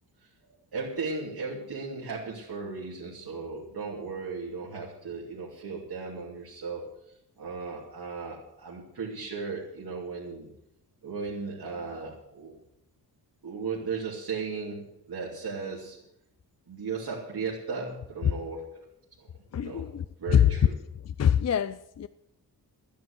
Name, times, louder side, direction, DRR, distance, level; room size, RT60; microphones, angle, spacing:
voice 1, 0.7-6.9 7.4-10.5 11.0-12.5 13.4-16.0 16.7-18.8 19.2-19.8 20.2-20.7, right 4 dB, 65° right, 2.9 m, -36 dB
voice 2, 19.5-20.5 21.0-22.1, left 9 dB, 45° left, 0.4 m, -25 dB
12.5 x 10.5 x 8.1 m
wide cardioid pair, 130°, 39 cm